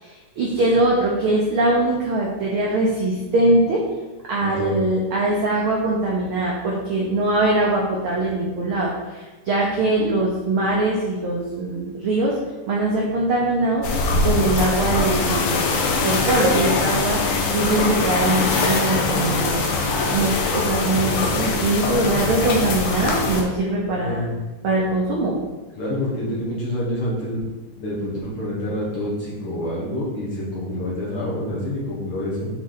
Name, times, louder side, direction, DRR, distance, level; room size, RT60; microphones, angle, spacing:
voice 1, 0.0-3.8 4.3-12.3 12.7-13.9 14.2-15.6 16.0-19.6 20.1-24.3 24.6-25.4, right 2 dB, 80° right, -3 dB, 1.1 m, -22 dB
voice 2, 4.4-4.7 23.9-24.3 25.8-27.4 27.8-32.5, left 1 dB, 55° left, -6 dB, 1.7 m, -27 dB
sound 1, 13.8-23.4, left 3 dB, 80° left, 2.3 m, -22 dB
6.9 x 4.1 x 3.9 m, 1.2 s
omnidirectional pair, 3.6 m